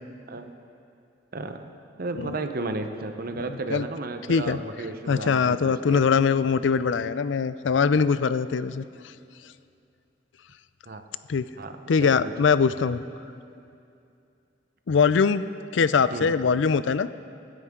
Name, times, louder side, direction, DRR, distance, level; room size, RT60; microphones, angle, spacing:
voice 1, 1.3-1.7 2.0-6.0 10.9-11.0 11.6-12.3 16.1-16.3, right 2 dB, 55° right, 7 dB, 0.9 m, -33 dB
voice 2, 5.1-8.8 11.3-11.4 11.9-13.0 14.9-15.5 15.7-17.1, left 5 dB, 90° left, 15 dB, 0.4 m, -22 dB
26.0 x 10.0 x 3.8 m, 2.5 s
head